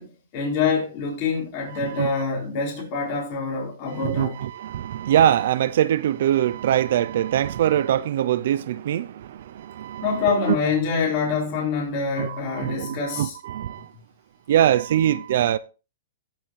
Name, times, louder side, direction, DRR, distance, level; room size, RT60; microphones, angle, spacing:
voice 1, 0.0-4.4 10.0-13.4, left 5 dB, 35° left, 4.2 m, -26 dB
voice 2, 4.0-10.2 10.5-10.6 12.1-13.9 14.5-15.6, right 11 dB, 60° right, 0.4 m, -23 dB
16.0 x 5.8 x 3.1 m
hypercardioid pair, 165°, 0 cm